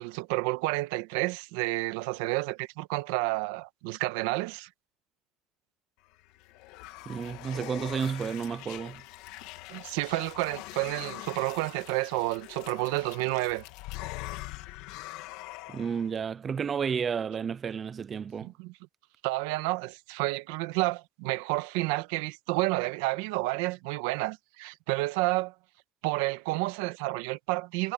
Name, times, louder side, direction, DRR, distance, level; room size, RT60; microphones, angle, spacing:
voice 1, 0.0-4.7 9.7-13.6 18.4-18.7 19.2-25.5 26.0-27.9, right 21 dB, 85° right, 1.2 m, -30 dB
sound 1, 6.1-16.1, left 18 dB, 60° left, 1.7 m, -43 dB
voice 2, 7.1-9.0 15.7-18.5, right 6 dB, 20° right, 0.3 m, -31 dB
cardioid pair, 180°, 0 cm